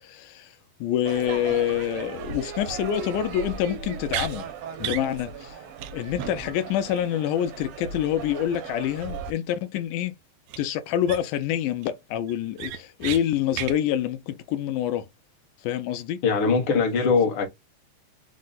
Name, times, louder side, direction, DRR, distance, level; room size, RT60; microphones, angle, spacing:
voice 1, 0.0-0.5 0.8-4.5 4.8-5.6 5.9-10.1 10.6-15.1 15.6-16.2, left 11 dB, 85° left, 2.1 m, -27 dB
Crowd / Fireworks, 1.1-9.3, right 6 dB, 70° right, 1.6 m, -37 dB
sound 1, 4.1-4.3 4.8-5.1 5.4-5.5 5.8-5.9 6.2-6.3 10.5-10.6 11.1-11.4 11.8-11.9 12.3-13.2 13.5-13.8, right 13 dB, 85° right, 2.1 m, -32 dB
voice 2, 16.2-17.5, left 5 dB, 55° left, 1.6 m, -21 dB
5.1 x 2.1 x 3.8 m
omnidirectional pair, 3.6 m